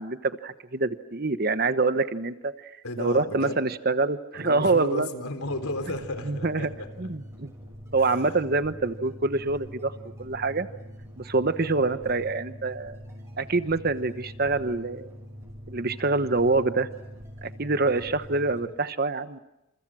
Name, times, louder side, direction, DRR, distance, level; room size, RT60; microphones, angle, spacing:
voice 1, 0.0-2.7 3.0-5.1 6.2-6.7 7.0-7.5 7.9-9.9 10.2-10.7 11.2-13.0 13.4-15.1 15.7-16.9 17.4-19.4, right 3 dB, 45° right, 11 dB, 1.1 m, -26 dB
voice 2, 2.8-3.6 4.3-6.9 8.0-8.3, left 2 dB, 85° left, 7 dB, 3.7 m, -34 dB
sound 1, 5.4-18.7, equal, 15° right, 6.4 m, -43 dB
29.0 x 28.0 x 6.3 m, 0.90 s
head